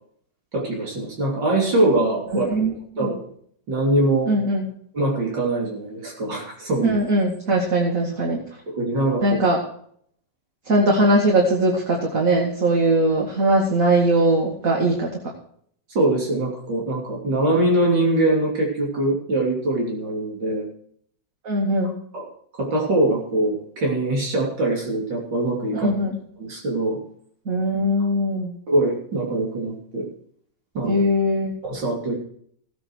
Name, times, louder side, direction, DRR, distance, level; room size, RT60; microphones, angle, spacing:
voice 1, 0.5-2.7 3.0-3.3 3.7-4.3 4.9-7.0 8.7-9.4 16.0-20.7 22.1-22.3 22.5-25.9 26.4-27.0 28.7-30.1 30.8-31.0 31.6-32.2, right 2 dB, 85° right, -2 dB, 3.8 m, -23 dB
voice 2, 2.3-2.7 3.0-3.1 4.3-4.6 6.8-8.4 9.2-9.6 10.7-15.1 21.4-22.0 25.7-26.2 27.5-28.6 30.8-31.6, right 1 dB, 50° right, -1 dB, 2.6 m, -20 dB
16.0 x 9.1 x 4.7 m, 0.62 s
omnidirectional pair, 1.9 m